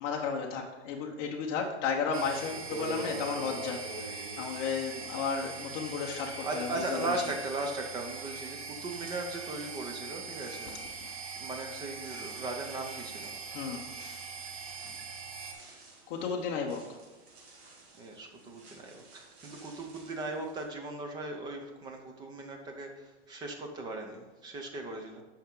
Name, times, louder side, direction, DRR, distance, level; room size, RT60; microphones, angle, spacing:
voice 1, 0.0-7.1 11.0-11.1 11.4-11.5 13.5-13.9 16.1-17.0, left 5 dB, 35° left, 0 dB, 0.8 m, -34 dB
sound 1, 1.9-2.0 2.5-5.6 5.9-20.7, right 2 dB, 60° right, 2.3 m, -49 dB
sound 2, 2.1-15.5, right 5 dB, 90° right, 2.3 m, -42 dB
voice 2, 6.4-13.3 18.0-25.2, right 2 dB, 10° right, 3 dB, 0.6 m, -38 dB
8.2 x 5.7 x 3.8 m, 1.2 s
supercardioid pair, 160°, 36 cm